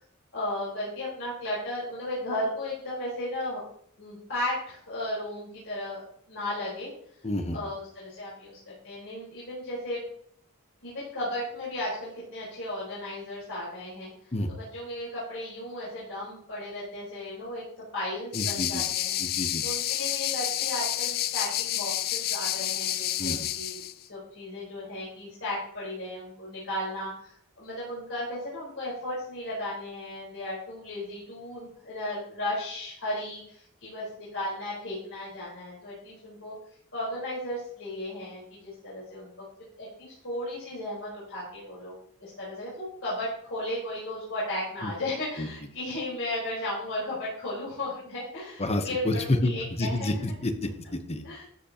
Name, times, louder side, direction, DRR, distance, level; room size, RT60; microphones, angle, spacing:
voice 1, 0.3-3.6 4.0-6.9 7.5-10.0 10.8-17.6 17.9-19.2 19.6-36.5 36.9-39.4 39.8-41.9 42.2-50.1 51.2-51.4, left 1 dB, 65° left, -7 dB, 4.2 m, -35 dB
voice 2, 7.2-7.6 14.3-14.5 18.3-18.8 19.2-19.6 23.2-23.5 44.8-44.9 45.4-45.5 48.6-49.5 49.8-51.3, left 1 dB, 30° left, 8 dB, 0.9 m, -29 dB
sound 1, 18.3-23.9, left 13 dB, 45° left, 0.4 m, -29 dB
13.0 x 7.9 x 2.9 m, 0.65 s
head